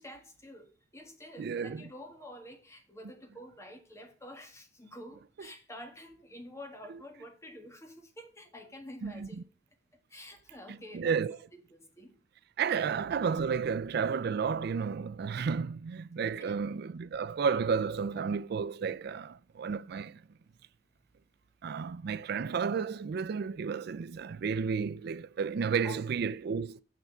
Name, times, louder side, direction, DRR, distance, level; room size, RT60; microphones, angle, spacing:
voice 1, 0.0-9.4 10.1-12.1 12.7-12.9 16.4-16.6 25.8-26.0, left 1 dB, 15° left, 1.7 m, -49 dB
voice 2, 1.4-1.8 9.0-9.3 10.9-11.4 12.6-20.1 21.6-26.8, right 6 dB, 60° right, 0.4 m, -32 dB
7.1 x 6.6 x 6.7 m
head